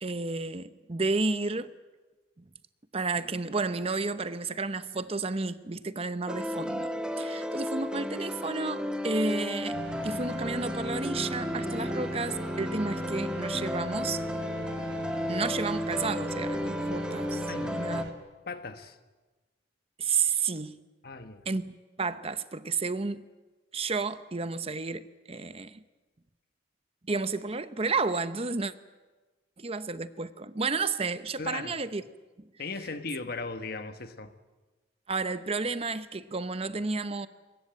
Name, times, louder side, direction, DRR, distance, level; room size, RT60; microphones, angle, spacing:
voice 1, 0.0-1.7 2.9-6.9 7.2-9.8 10.0-14.2 15.3-17.4 17.7-18.0 20.0-20.8 21.5-23.3 23.7-25.8 27.1-28.7 29.6-32.0 35.1-37.3, right 4 dB, 35° right, 0.8 m, -31 dB
sound 1, 6.3-18.0, left 1 dB, 5° right, 1.4 m, -34 dB
sound 2, 9.7-18.1, equal, 70° right, 3.5 m, -38 dB
voice 2, 17.5-17.8 18.5-19.0 21.0-21.5 31.4-31.8 32.6-34.3, left 3 dB, 60° left, 1.5 m, -37 dB
23.0 x 20.5 x 9.0 m
head